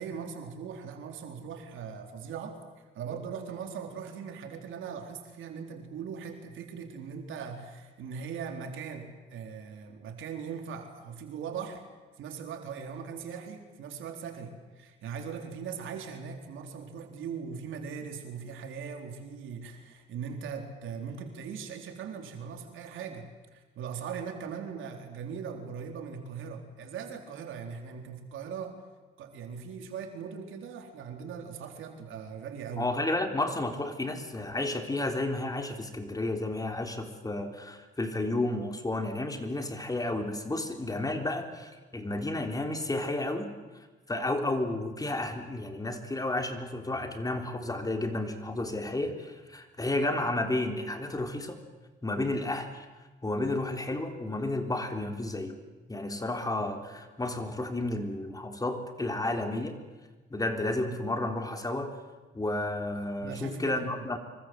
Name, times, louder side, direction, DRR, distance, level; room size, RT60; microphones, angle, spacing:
voice 1, 0.0-2.6 2.9-11.8 12.2-23.3 23.5-28.8 29.2-32.9 63.2-63.9, right 6 dB, 80° right, 4 dB, 4.0 m, -40 dB
voice 2, 32.8-51.6 52.0-52.9 53.2-55.6 55.9-59.8 60.3-61.9 62.3-64.2, left 2 dB, 20° left, 5 dB, 3.7 m, -32 dB
26.0 x 24.0 x 7.9 m, 1.3 s
cardioid pair, 90°, 20 cm